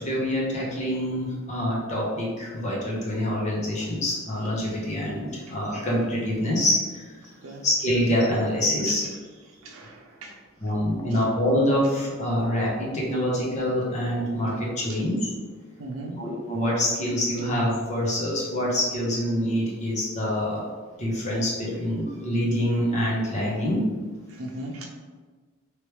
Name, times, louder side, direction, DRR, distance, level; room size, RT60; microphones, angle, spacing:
voice 1, 0.0-7.0 7.6-9.0 10.6-15.3 16.1-20.7 21.0-23.9, equal, 35° left, -4 dB, 0.9 m, -26 dB
voice 2, 9.6-10.4 14.9-15.0 15.8-16.2 24.3-24.8, right 1 dB, 75° right, 0 dB, 0.6 m, -37 dB
3.2 x 3.1 x 3.1 m, 1.4 s
head